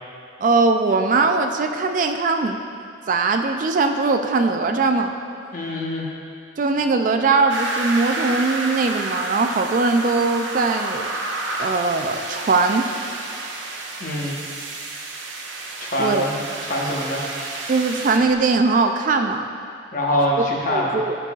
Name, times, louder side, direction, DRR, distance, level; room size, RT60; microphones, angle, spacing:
voice 1, 0.4-2.6 3.1-5.1 6.6-11.1 11.6-12.9 16.0-16.3 17.7-19.5 20.4-21.2, right 3 dB, 45° right, 5 dB, 0.3 m, -20 dB
voice 2, 5.5-6.1 14.0-14.4 15.8-17.2 19.9-21.0, left 1 dB, 45° left, -3 dB, 1.0 m, -24 dB
sound 1, 7.5-18.3, right 2 dB, 85° right, 0.7 m, -30 dB
11.5 x 5.4 x 2.3 m, 2.4 s
head